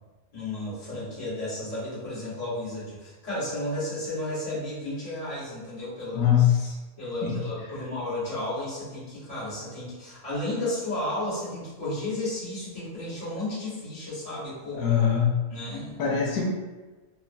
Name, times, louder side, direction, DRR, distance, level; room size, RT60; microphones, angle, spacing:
voice 1, 0.3-6.3 7.0-14.9 15.5-16.0, left 1 dB, 25° left, -11 dB, 1.3 m, -33 dB
voice 2, 6.1-6.7 7.2-7.4 14.7-15.3 16.0-16.4, left 9 dB, 90° left, -3 dB, 1.1 m, -22 dB
3.1 x 2.2 x 2.5 m, 1.2 s
omnidirectional pair, 1.5 m